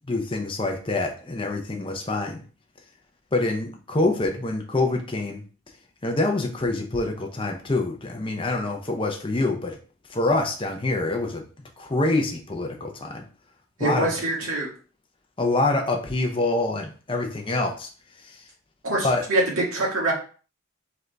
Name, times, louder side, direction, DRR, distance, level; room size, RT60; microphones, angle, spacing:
voice 1, 0.1-2.4 3.3-5.4 6.0-9.8 10.1-11.4 11.8-13.2 13.8-14.1 15.4-17.9 18.2-18.4 19.0-19.2, left 2 dB, 25° left, 2 dB, 0.7 m, -26 dB
voice 2, 13.8-14.7 18.8-20.1, right 2 dB, 80° right, -4 dB, 1.9 m, -24 dB
3.9 x 3.5 x 3.3 m, 0.39 s
head